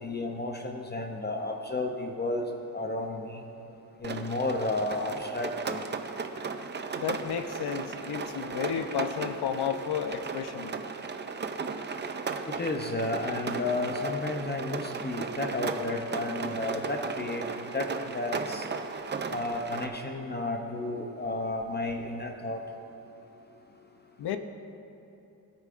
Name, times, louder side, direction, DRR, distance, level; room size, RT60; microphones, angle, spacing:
voice 1, 0.0-2.5 2.7-3.4 4.0-5.8 12.5-18.7 19.3-22.6, left 2 dB, 25° left, 2 dB, 0.5 m, -32 dB
Rain, 4.0-19.9, right 4 dB, 30° right, 0.4 m, -36 dB
voice 2, 6.9-10.7 24.2-24.4, left 8 dB, 75° left, 8 dB, 0.7 m, -32 dB
18.0 x 9.3 x 2.5 m, 2.9 s
wide cardioid pair, 155°, 39 cm